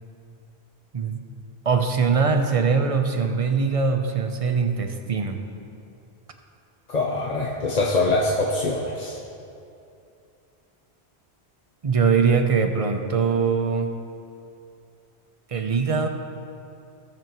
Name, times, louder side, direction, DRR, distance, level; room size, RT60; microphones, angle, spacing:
voice 1, 1.6-5.5 11.8-13.9 15.5-16.1, right 5 dB, 40° right, 5 dB, 0.6 m, -22 dB
voice 2, 6.9-9.2, left 2 dB, 45° left, -2 dB, 0.8 m, -24 dB
17.5 x 6.9 x 3.0 m, 2.6 s
omnidirectional pair, 1.1 m